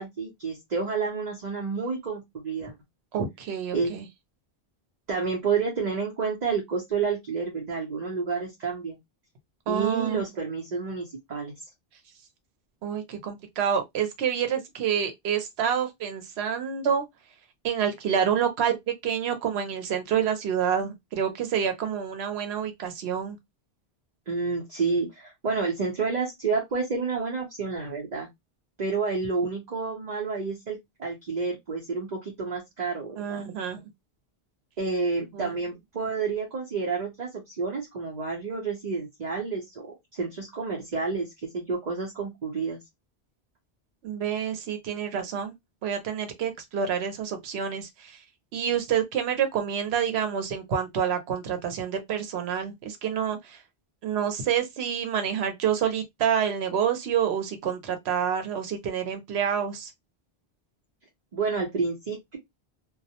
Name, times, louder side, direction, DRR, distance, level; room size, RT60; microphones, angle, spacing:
voice 1, 0.0-2.7 3.7-3.9 5.1-9.0 9.7-11.5 24.3-28.3 28.8-33.4 34.8-42.8 61.3-62.4, right 4 dB, 50° right, 0.8 m, -30 dB
voice 2, 3.1-4.1 9.7-10.2 12.8-17.0 17.6-18.8 19.0-23.4 33.2-33.8 35.3-35.5 44.0-45.5 45.8-48.2 48.5-53.6 54.0-59.9, right 8 dB, 85° right, 0.9 m, -28 dB
2.3 x 2.0 x 2.7 m
omnidirectional pair, 1.0 m